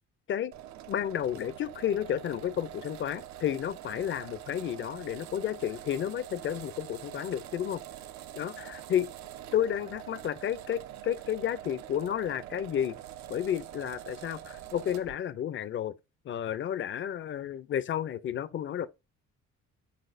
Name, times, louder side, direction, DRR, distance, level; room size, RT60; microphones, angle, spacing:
sound 1, 0.5-15.2, right 12 dB, 65° right, 0.5 m, -45 dB
voice 1, 0.9-7.8 8.4-9.1 9.5-13.0 13.3-15.9 16.2-18.9, left 10 dB, 40° left, 0.4 m, -31 dB
4.7 x 4.1 x 2.5 m
cardioid pair, 90°, 30 cm